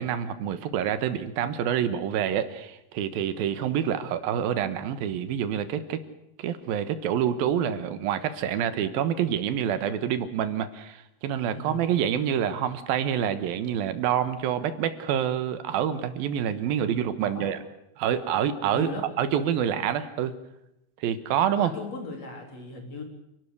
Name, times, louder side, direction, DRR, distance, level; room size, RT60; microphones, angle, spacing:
voice 1, 0.0-6.0 6.4-17.6 18.0-18.9 19.2-20.3 21.0-21.7, right 9 dB, 70° right, 11 dB, 2.8 m, -27 dB
voice 2, 11.5-11.8 17.2-17.5 18.7-19.0 21.6-23.0, left 3 dB, 40° left, 2 dB, 4.6 m, -37 dB
27.5 x 12.5 x 8.2 m, 0.86 s
omnidirectional pair, 4.8 m